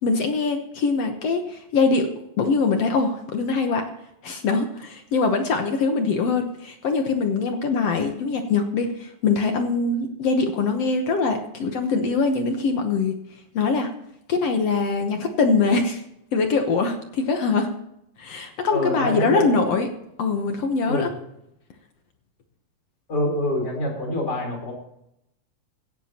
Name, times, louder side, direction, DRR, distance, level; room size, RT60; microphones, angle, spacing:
voice 1, 0.0-3.9 4.2-13.2 13.5-13.9 14.3-16.0 16.3-17.7 18.2-19.9 20.2-21.1, left 4 dB, 60° left, 5 dB, 1.8 m, -23 dB
voice 2, 18.7-19.5 20.9-21.1 23.1-24.7, left 1 dB, 30° left, 1 dB, 4.4 m, -25 dB
17.0 x 14.5 x 3.0 m, 0.81 s
omnidirectional pair, 3.9 m